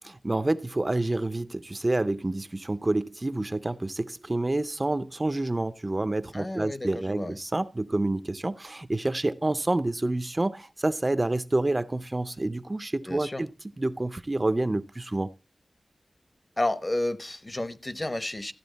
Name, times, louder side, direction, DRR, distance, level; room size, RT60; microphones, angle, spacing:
voice 1, 0.0-13.5 13.8-15.3, right 2 dB, 30° right, 0.5 m, -28 dB
voice 2, 6.3-7.4 13.1-13.4 16.6-18.5, left 1 dB, 30° left, 0.9 m, -31 dB
14.0 x 8.5 x 4.0 m
wide cardioid pair, 90°, 0 cm